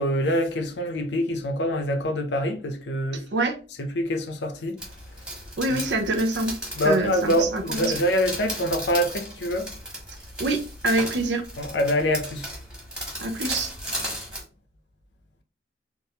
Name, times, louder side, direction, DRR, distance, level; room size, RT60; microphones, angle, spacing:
voice 1, 0.0-3.3 3.8-4.8 5.7-5.8 6.7-9.7 11.6-12.5, equal, 85° left, 0.7 m, -25 dB
sound 1, 4.8-14.4, equal, 5° right, 1.3 m, -36 dB
voice 2, 5.6-6.6 6.8-8.0 10.4-11.4 13.2-13.7, right 2 dB, 85° right, 0.7 m, -25 dB
3.5 x 2.5 x 2.8 m
head